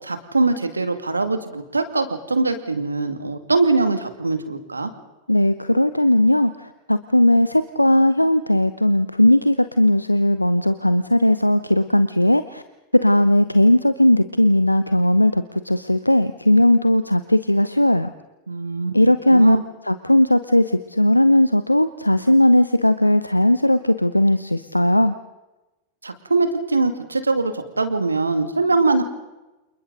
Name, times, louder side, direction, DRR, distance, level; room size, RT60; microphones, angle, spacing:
voice 1, 0.0-4.9 18.5-19.0 19.3-19.6 26.0-29.0, right 3 dB, 80° right, 9 dB, 2.3 m, -22 dB
voice 2, 5.3-12.6 12.9-18.1 18.9-19.6 19.8-25.1, left 1 dB, 85° left, 12 dB, 0.7 m, -17 dB
29.0 x 28.5 x 3.9 m, 1.0 s
figure-of-eight pair, 90°, 0 cm